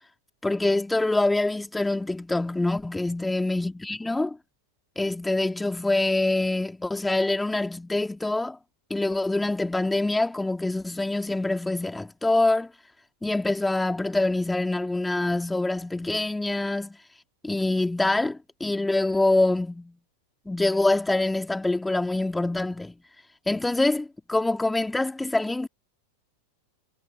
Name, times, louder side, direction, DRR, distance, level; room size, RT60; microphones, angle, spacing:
voice 1, 0.4-4.4 5.0-8.6 8.9-12.7 13.2-17.0 17.4-19.9 20.5-23.0 23.5-25.7, left 2 dB, 5° left, 2.8 m, -25 dB
figure-of-eight pair, 90°, 0 cm